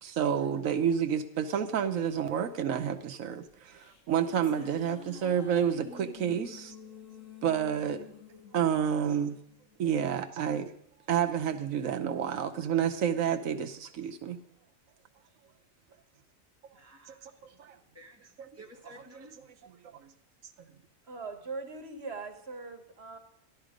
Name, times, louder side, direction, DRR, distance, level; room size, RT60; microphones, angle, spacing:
voice 1, 0.0-6.7 7.4-8.0 8.5-9.4 9.8-10.7 11.1-14.4 17.1-17.2 17.6-17.8 19.6-20.1, right 8 dB, 85° right, 7 dB, 1.2 m, -29 dB
sound 1, 3.5-10.0, left 6 dB, 75° left, 1.9 m, -50 dB
voice 2, 16.7-17.3 17.9-19.4, right 1 dB, 10° right, 0 dB, 1.6 m, -53 dB
voice 3, 21.1-23.2, right 3 dB, 55° right, 5 dB, 1.7 m, -40 dB
14.0 x 11.5 x 5.1 m, 0.70 s
omnidirectional pair, 1.3 m